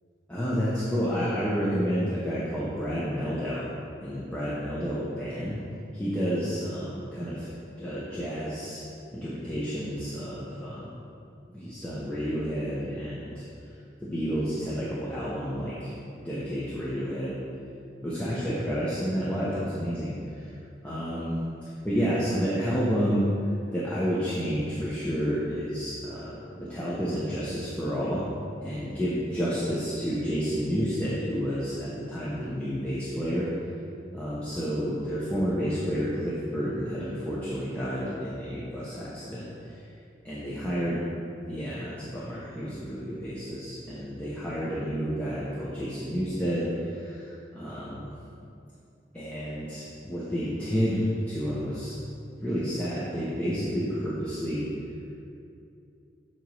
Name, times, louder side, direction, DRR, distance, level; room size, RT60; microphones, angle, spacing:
voice 1, 0.3-3.7 4.0-5.6 5.9-7.5 7.8-8.8 9.1-10.9 11.5-13.4 14.0-15.9 16.2-17.4 18.0-20.2 20.4-20.5 20.8-21.4 21.8-23.2 23.7-28.2 28.6-33.5 34.1-39.5 40.2-41.0 41.5-48.1 49.1-51.9 52.4-54.7, equal, 5° left, -9 dB, 0.7 m, -30 dB
7.7 x 3.0 x 5.4 m, 2.6 s
head